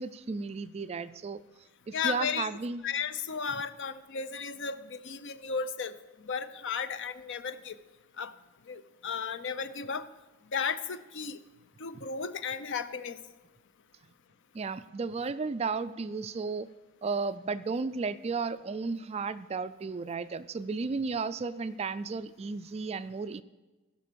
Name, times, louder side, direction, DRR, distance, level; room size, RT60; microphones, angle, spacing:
voice 1, 0.0-1.4 1.9-2.8 11.9-12.0 14.5-16.7 17.0-23.4, right 4 dB, 30° right, 14 dB, 0.3 m, -34 dB
voice 2, 1.9-2.5 2.8-5.9 6.2-7.8 8.2-8.3 8.7-10.1 10.5-11.4 11.8-13.2, left 6 dB, 55° left, 14 dB, 0.6 m, -34 dB
16.0 x 6.0 x 6.8 m, 1.2 s
head